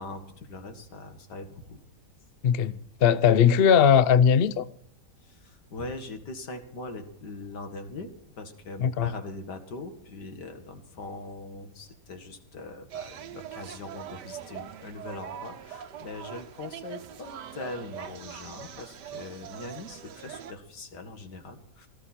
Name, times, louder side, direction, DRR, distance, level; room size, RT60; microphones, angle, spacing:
voice 1, 0.0-1.8 2.7-2.8 5.2-8.1 8.4-21.9, left 2 dB, 75° left, 2.5 m, -41 dB
voice 2, 2.4-2.7 3.0-4.6 8.8-9.1, left 8 dB, 60° left, 0.6 m, -19 dB
sound 1, 12.9-20.5, right 9 dB, 85° right, 1.6 m, -42 dB
17.5 x 14.0 x 4.3 m
omnidirectional pair, 1.8 m